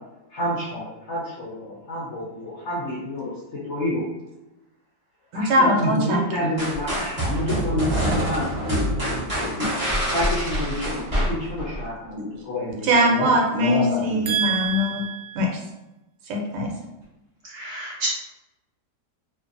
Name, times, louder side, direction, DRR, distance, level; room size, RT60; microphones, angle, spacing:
voice 1, 0.3-3.3 3.6-4.0 5.3-9.7 10.1-11.0 11.4-13.3 13.5-14.4, left 1 dB, 65° left, -7 dB, 0.7 m, -28 dB
voice 2, 5.3-6.2 12.8-15.5 16.3-16.7, equal, 80° right, 0 dB, 1.2 m, -21 dB
sound 1, 6.6-11.8, equal, 25° right, 1.0 m, -26 dB
voice 3, 17.5-18.1, right 2 dB, 50° right, -6 dB, 0.9 m, -30 dB
2.6 x 2.5 x 2.5 m, 0.98 s
omnidirectional pair, 1.9 m